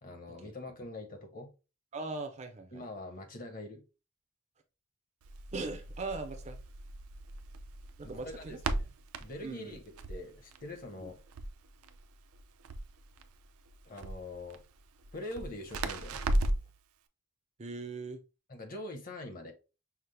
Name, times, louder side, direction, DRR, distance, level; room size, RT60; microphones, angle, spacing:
voice 1, 0.0-1.5 2.7-3.8 8.5-8.8 9.2-9.8 10.1-11.2 13.8-14.6 15.1-16.2 18.5-19.5, left 1 dB, 40° left, 0.8 m, -43 dB
voice 2, 1.9-2.8 5.5-6.6 8.0-8.6 9.4-9.8 10.9-11.1 17.6-18.2, right 3 dB, 30° right, 0.4 m, -40 dB
Crackle, 5.2-16.8, right 1 dB, 85° right, 0.5 m, -37 dB
5.7 x 2.0 x 3.2 m
head